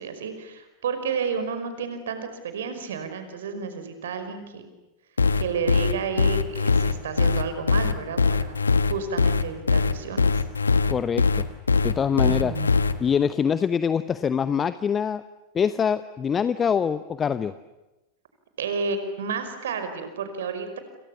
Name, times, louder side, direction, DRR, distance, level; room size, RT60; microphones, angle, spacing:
voice 1, 0.0-4.7 5.4-8.5 8.9-10.5 12.2-12.7 18.6-20.8, right 5 dB, 60° right, 9 dB, 5.3 m, -31 dB
sound 1, 5.2-12.9, left 4 dB, 75° left, 1.5 m, -21 dB
voice 2, 10.9-11.5 11.8-12.5 13.0-15.2 15.5-17.5, left 7 dB, 20° left, 14 dB, 0.9 m, -24 dB
29.5 x 28.0 x 7.2 m, 1.0 s
figure-of-eight pair, 90°, 0 cm